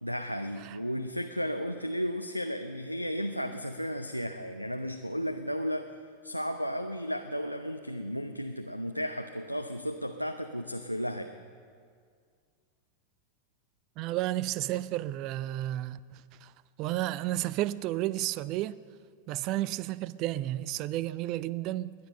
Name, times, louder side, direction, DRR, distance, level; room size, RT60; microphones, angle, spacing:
voice 1, 0.0-5.9 6.2-11.3, equal, 90° right, 0.6 m, -34 dB
voice 2, 14.0-16.5 16.8-18.8 19.3-21.9, right 15 dB, 40° right, 0.4 m, -32 dB
19.5 x 10.5 x 6.6 m
figure-of-eight pair, 90°, 0 cm